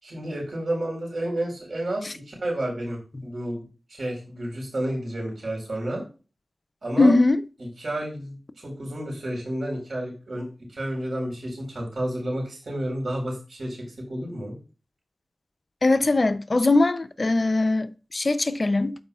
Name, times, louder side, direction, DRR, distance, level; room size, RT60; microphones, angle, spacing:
voice 1, 0.0-3.6 3.9-6.0 6.8-7.2 7.6-14.5, right 1 dB, 70° right, 4.2 m, -31 dB
voice 2, 7.0-7.4 15.8-19.0, left 2 dB, 50° left, 0.5 m, -21 dB
12.5 x 4.9 x 2.4 m
cardioid pair, 50°, 0 cm